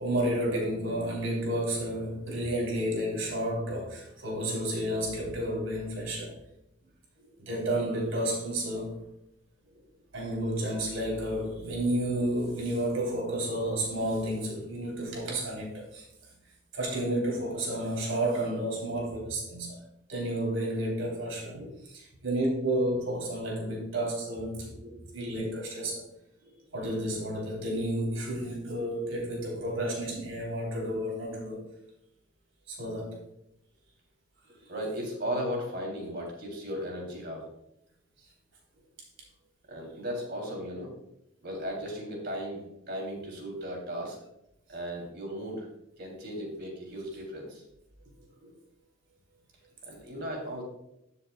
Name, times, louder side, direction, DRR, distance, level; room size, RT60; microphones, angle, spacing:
voice 1, 0.0-6.4 7.5-8.9 10.1-16.1 16.7-19.8 20.1-21.6 22.2-26.0 26.7-31.6 32.7-33.2, right 1 dB, 90° right, -2 dB, 3.5 m, -31 dB
voice 2, 34.7-37.5 39.7-40.9 41.4-44.2 44.7-45.7 46.0-47.6 48.4-48.6 49.9-50.6, equal, 55° right, 0 dB, 3.1 m, -36 dB
12.5 x 7.1 x 2.3 m, 0.81 s
head